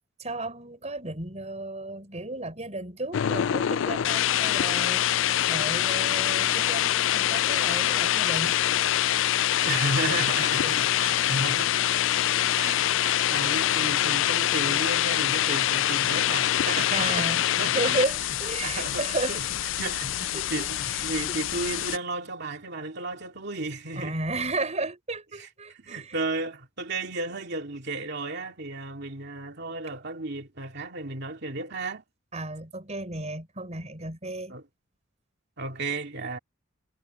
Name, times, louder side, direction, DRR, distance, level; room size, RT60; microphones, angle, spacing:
voice 1, 0.2-5.0 5.5-8.6 16.9-17.4 17.7-19.4 20.3-21.4 23.9-26.2 32.3-34.5, right 2 dB, 35° right, 5.1 m, -33 dB
sound 1, 3.1-22.0, left 12 dB, 65° left, 0.4 m, -25 dB
voice 2, 9.6-11.9 12.5-18.0 18.6-19.5 19.8-24.2 25.4-25.5 25.8-32.0 34.5-34.6 35.6-36.4, right 2 dB, 55° right, 2.7 m, -33 dB
head